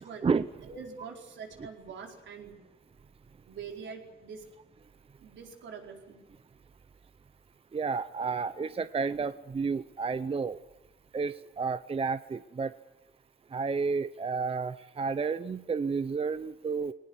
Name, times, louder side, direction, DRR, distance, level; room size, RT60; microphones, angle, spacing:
voice 1, 0.6-2.6 3.5-4.4 5.2-6.2, right 5 dB, 70° right, 2 dB, 4.7 m, -44 dB
voice 2, 7.7-10.6 11.1-12.7 13.5-16.9, right 5 dB, 30° right, 13 dB, 0.8 m, -31 dB
21.0 x 19.5 x 9.8 m, 0.98 s
cardioid pair, 90°, 20 cm